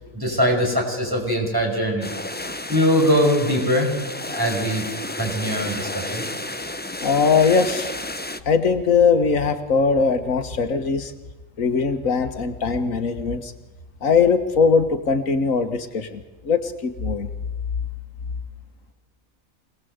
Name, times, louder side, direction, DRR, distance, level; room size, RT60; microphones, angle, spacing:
voice 1, 0.0-2.1 2.7-3.9 4.3-4.9 5.2-6.2, equal, 15° right, 0 dB, 6.0 m, -22 dB
sound 1, 2.0-8.4, left 1 dB, 10° left, 0.6 m, -31 dB
voice 2, 7.0-7.9 8.5-11.1 11.6-13.5 14.0-17.3, left 5 dB, 85° left, 8 dB, 1.8 m, -20 dB
26.0 x 19.0 x 8.0 m, 1.2 s
omnidirectional pair, 1.4 m